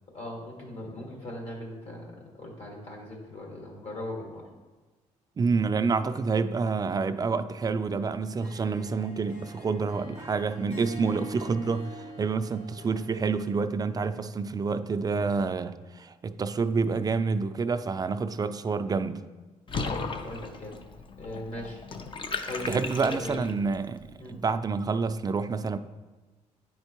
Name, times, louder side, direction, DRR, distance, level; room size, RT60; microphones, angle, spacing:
voice 1, 0.1-4.4 19.8-20.8 21.2-21.8 22.4-23.5 24.2-24.4, left 1 dB, 55° left, -1 dB, 1.8 m, -39 dB
voice 2, 5.4-19.2 22.7-25.8, right 4 dB, 30° right, 10 dB, 0.4 m, -28 dB
Harp, 8.2-13.6, equal, 75° left, 1.2 m, -45 dB
Water / Bathtub (filling or washing), 19.7-23.7, left 4 dB, 40° left, 0.6 m, -36 dB
9.3 x 4.4 x 3.0 m, 1.2 s
cardioid pair, 85°, 13 cm